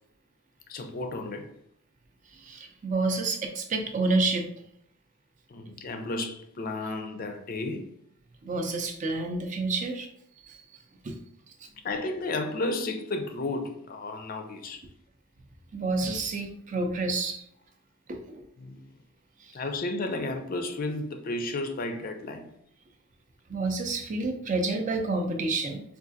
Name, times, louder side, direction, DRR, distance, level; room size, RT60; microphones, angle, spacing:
voice 1, 0.7-1.5 5.5-7.9 11.8-14.8 18.6-18.9 19.5-22.5, left 2 dB, 45° left, 0.4 m, -33 dB
voice 2, 2.4-4.5 8.4-10.1 10.4-10.6 11.0-11.2 15.7-17.4 18.1-18.2 19.4-19.5 23.5-25.8, right 3 dB, 35° right, 0.5 m, -29 dB
4.6 x 2.4 x 2.6 m
head